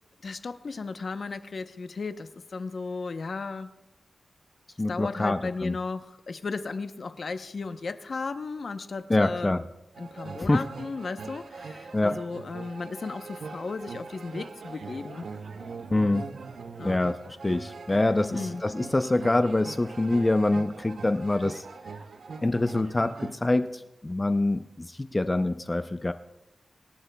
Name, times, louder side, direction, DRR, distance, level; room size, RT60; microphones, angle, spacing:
voice 1, 0.2-3.7 4.9-9.6 10.0-15.3 16.8-17.0 18.3-18.6, left 4 dB, 55° left, 9 dB, 0.7 m, -35 dB
voice 2, 4.8-5.8 9.1-9.6 10.4-10.7 11.9-12.1 15.9-16.3 16.8-21.7 22.4-26.1, left 2 dB, 20° left, 9 dB, 0.4 m, -25 dB
sound 1, 9.9-23.4, right 4 dB, 80° right, 0.7 m, -42 dB
26.5 x 12.0 x 2.3 m, 0.92 s
wide cardioid pair, 155°, 0 cm